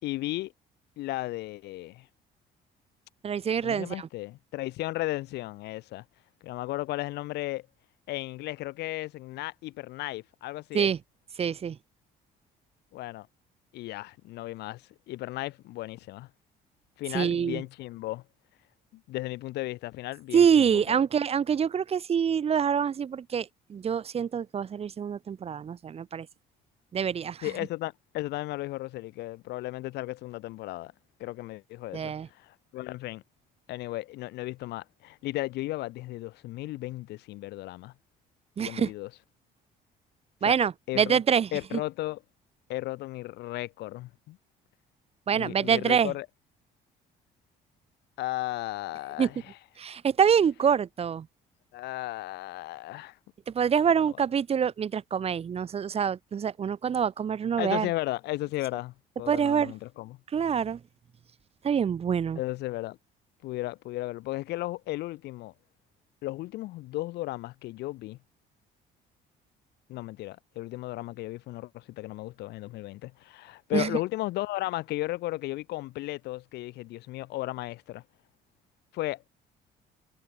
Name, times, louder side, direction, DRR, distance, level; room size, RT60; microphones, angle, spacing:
voice 1, 0.0-0.5 1.0-2.1 3.6-6.0 6.4-7.7 8.1-10.9 12.9-13.3 13.7-16.3 17.0-18.2 18.9-21.0 27.4-30.9 31.2-33.2 33.7-37.9 38.6-39.1 40.4-41.2 41.5-42.2 42.7-44.4 45.3-46.3 48.2-49.6 51.7-53.2 54.0-54.2 57.6-60.2 62.4-63.0 63.4-65.5 66.2-68.2 69.9-78.0 78.9-79.3, left 17 dB, 85° left, 4.1 m, -35 dB
voice 2, 3.2-4.1 10.7-11.0 11.4-11.8 17.1-17.6 20.3-26.3 26.9-27.4 31.9-32.3 38.6-38.9 40.4-41.8 45.3-46.1 49.2-49.3 49.8-51.3 53.5-57.9 59.3-59.7 60.3-60.8 61.6-62.4 73.7-73.9, right 7 dB, 35° right, 1.0 m, -26 dB
cardioid pair, 110°, 17 cm